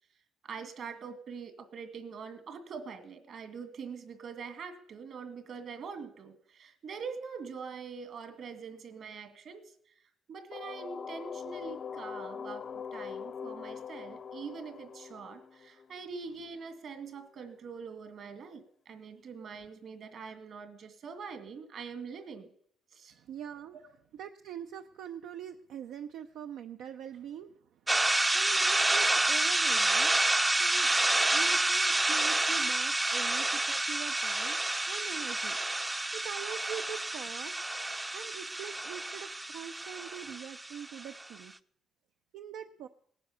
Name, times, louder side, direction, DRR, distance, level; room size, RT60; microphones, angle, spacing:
voice 1, 0.4-9.7 10.3-22.5 22.9-23.2 40.2-40.3, right 5 dB, 65° right, 9 dB, 2.1 m, -44 dB
sound 1, 10.5-16.2, left 7 dB, 50° left, 0.5 m, -42 dB
voice 2, 23.1-23.8 24.2-27.8 28.3-30.1 30.6-30.9 31.3-34.6 34.9-35.6 36.1-37.6 38.1-41.5 42.3-42.9, right 9 dB, 85° right, 7 dB, 0.6 m, -43 dB
sound 2, 27.9-41.2, right 2 dB, 15° right, 0.5 m, -29 dB
18.0 x 9.9 x 6.8 m, 0.65 s
cardioid pair, 90°, 0 cm